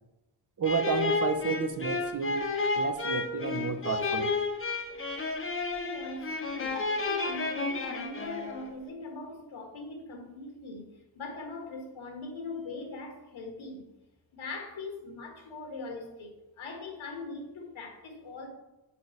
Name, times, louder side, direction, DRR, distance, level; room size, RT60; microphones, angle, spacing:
sound 1, 0.6-8.7, left 3 dB, 25° left, 1.0 m, -31 dB
voice 1, 0.6-2.5 2.7-4.3, right 6 dB, 40° right, 8 dB, 0.8 m, -31 dB
voice 2, 4.6-4.9 5.7-13.9 14.3-18.5, left 3 dB, 70° left, 2 dB, 1.7 m, -41 dB
5.8 x 3.9 x 6.0 m, 1.0 s
supercardioid pair, 50°, 49 cm